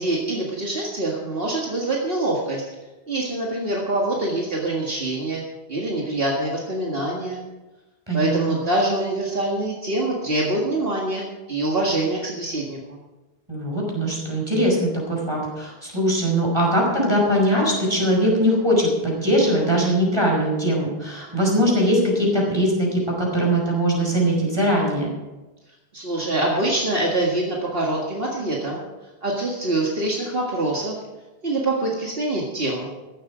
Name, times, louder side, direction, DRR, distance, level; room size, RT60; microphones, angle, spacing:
voice 1, 0.0-2.6 3.1-5.4 5.7-7.4 8.1-13.0 25.9-28.8 29.2-31.0 31.4-32.9, right 2 dB, 65° right, -2 dB, 2.1 m, -25 dB
voice 2, 8.1-8.6 13.5-25.1, equal, 25° right, -2 dB, 5.4 m, -21 dB
15.5 x 12.5 x 5.0 m, 1.1 s
omnidirectional pair, 1.1 m